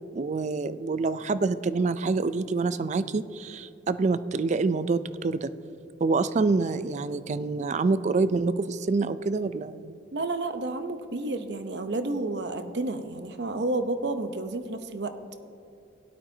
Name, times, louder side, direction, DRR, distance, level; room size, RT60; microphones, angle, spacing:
voice 1, 0.1-5.5 6.0-10.0, right 3 dB, 40° right, 14 dB, 0.4 m, -26 dB
voice 2, 10.1-15.1, right 2 dB, 65° right, 9 dB, 0.7 m, -30 dB
17.0 x 12.0 x 2.7 m, 2.7 s
head